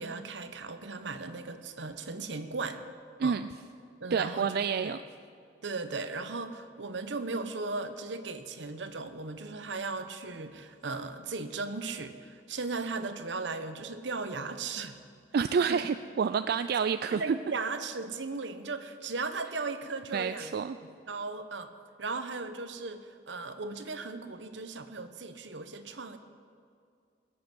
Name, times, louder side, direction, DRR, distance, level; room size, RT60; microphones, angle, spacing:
voice 1, 0.0-2.8 3.2-3.4 4.0-4.9 5.6-15.0 15.6-15.8 16.7-16.8 17.1-20.5 20.8-21.7 22.0-26.2, right 3 dB, 80° right, 9 dB, 0.9 m, -37 dB
voice 2, 4.1-5.0 15.3-17.2 20.1-20.8, right 6 dB, 55° right, 11 dB, 0.3 m, -28 dB
21.5 x 7.7 x 6.1 m, 2.3 s
head